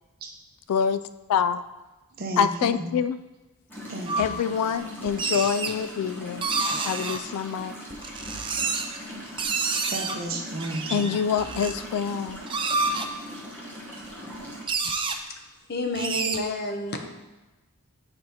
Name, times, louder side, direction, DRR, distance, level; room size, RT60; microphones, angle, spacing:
voice 1, 0.7-1.0 1.3-1.6 2.4-3.2 4.2-6.5 6.8-7.7 10.9-12.4, left 7 dB, 75° left, 15 dB, 0.3 m, -26 dB
voice 2, 2.1-2.9 3.9-4.4 9.9-11.1, right 1 dB, 45° right, 2 dB, 0.9 m, -33 dB
sound 1, 3.7-14.6, equal, 10° left, 1.1 m, -40 dB
sound 2, 4.1-4.3 5.1-5.8 6.4-7.2 7.9-9.0 9.4-10.2 10.6-11.7 12.3-13.1 14.0-14.1 14.3-14.4 14.7-15.2 15.9-16.4, right 4 dB, 20° right, 0.4 m, -28 dB
voice 3, 15.7-17.0, left 1 dB, 45° left, 4 dB, 0.7 m, -30 dB
8.6 x 4.5 x 2.8 m, 1.1 s
head